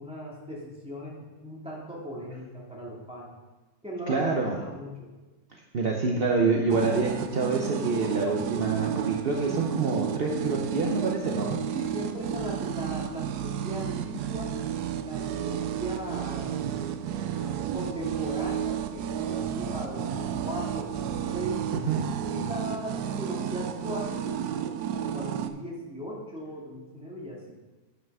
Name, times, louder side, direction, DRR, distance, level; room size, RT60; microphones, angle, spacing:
voice 1, 0.0-3.3 3.8-5.1 11.7-14.5 15.0-16.6 17.3-21.6 22.2-27.5, equal, 5° right, -5 dB, 2.2 m, -38 dB
voice 2, 4.1-4.6 5.5-11.6 21.7-22.1, right 4 dB, 55° right, 0 dB, 0.6 m, -27 dB
sound 1, 6.7-25.5, right 9 dB, 70° right, 1.0 m, -32 dB
9.2 x 5.8 x 5.5 m, 1.2 s
omnidirectional pair, 2.0 m